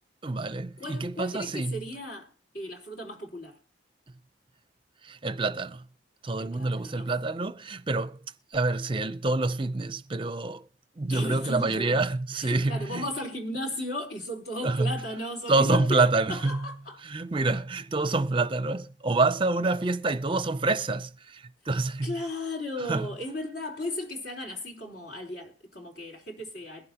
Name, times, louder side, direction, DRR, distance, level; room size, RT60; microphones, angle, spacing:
voice 1, 0.2-1.8 5.0-5.8 6.2-8.2 8.5-10.6 11.0-13.1 14.6-15.0 15.5-16.7 17.0-22.1 22.9-23.1, right 3 dB, 25° right, 0.6 m, -27 dB
voice 2, 0.8-3.6 6.4-7.1 11.1-12.1 12.3-16.0 16.3-17.0 22.0-26.9, left 1 dB, 60° left, 4.0 m, -36 dB
22.0 x 7.7 x 2.9 m
head